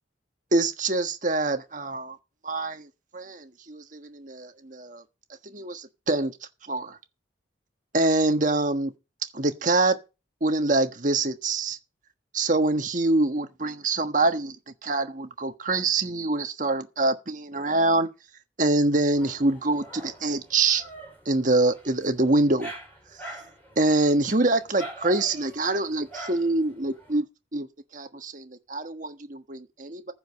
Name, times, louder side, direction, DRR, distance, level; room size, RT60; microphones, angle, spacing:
voice 1, 0.5-2.2 2.4-2.9 3.1-5.0 5.4-6.3 6.7-7.0 7.9-8.9 9.3-10.0 10.4-11.8 12.3-14.6 14.8-18.1 18.6-20.8 21.2-22.7 23.8-27.2 27.5-27.7 27.9-30.1, right 2 dB, 40° right, 1.4 m, -25 dB
Dog, 19.0-27.2, right 2 dB, 10° left, 4.9 m, -44 dB
15.0 x 5.1 x 7.5 m
head